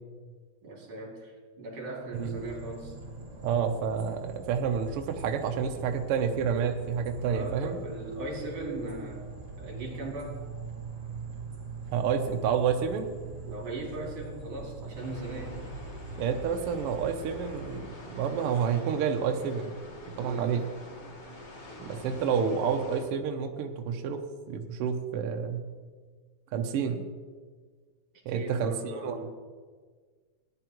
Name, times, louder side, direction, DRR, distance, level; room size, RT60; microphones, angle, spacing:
voice 1, 0.6-2.9 7.2-9.3 9.6-10.4 13.5-15.5 20.2-20.6 28.3-29.3, right 2 dB, 55° right, -1 dB, 3.5 m, -38 dB
sound 1, 2.1-17.8, right 4 dB, 35° right, 4.1 m, -42 dB
voice 2, 3.4-7.8 11.9-13.1 16.2-17.8 18.1-19.8 20.2-20.6 21.8-24.2 24.5-25.6 26.5-27.0 28.2-29.3, right 7 dB, 80° right, 4 dB, 1.3 m, -29 dB
sound 2, 14.9-23.0, left 1 dB, 40° left, 0.9 m, -46 dB
17.5 x 10.5 x 3.0 m, 1.5 s
omnidirectional pair, 3.6 m